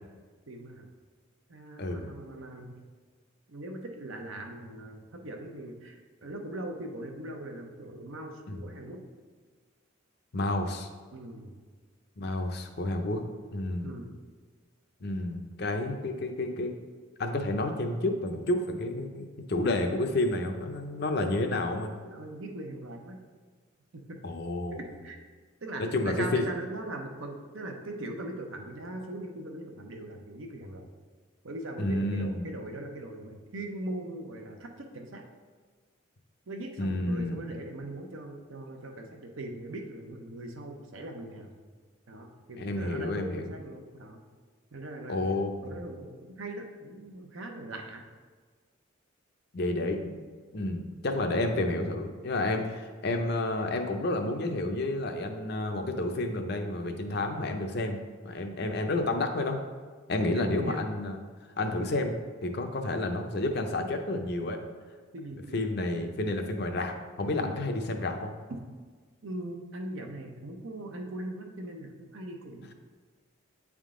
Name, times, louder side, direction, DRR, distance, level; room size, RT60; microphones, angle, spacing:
voice 1, 0.5-0.9 1.5-2.7 3.5-9.0 11.1-11.5 13.8-14.1 22.0-23.2 23.9-24.2 24.7-25.2 25.6-30.9 31.4-35.2 36.5-41.5 42.1-44.2 44.7-45.2 45.6-48.0 60.2-60.8 65.1-65.6 67.4-67.6 68.5-68.6 69.2-72.7, right 1 dB, 70° right, 3 dB, 0.8 m, -40 dB
voice 2, 1.8-2.1 8.5-8.6 10.3-10.9 12.2-13.2 13.5-14.0 15.0-16.7 17.2-21.9 24.2-24.8 25.8-26.4 31.8-32.5 36.8-37.4 42.6-43.5 45.1-45.9 49.5-50.1 50.5-59.6 60.1-61.2 61.6-64.6 65.5-68.3, left 2 dB, 50° left, 5 dB, 0.5 m, -30 dB
8.7 x 3.6 x 3.7 m, 1.5 s
head